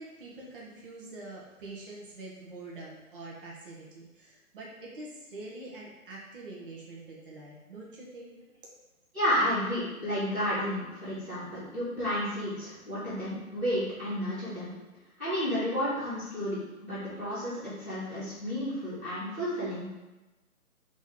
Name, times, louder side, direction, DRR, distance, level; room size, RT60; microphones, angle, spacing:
voice 1, 0.0-8.3, right 2 dB, 35° right, -4 dB, 0.9 m, -45 dB
voice 2, 9.1-14.7 15.2-19.9, equal, 5° right, -19 dB, 0.6 m, -31 dB
3.4 x 3.1 x 3.7 m, 1.1 s
figure-of-eight pair, 145°, 45 cm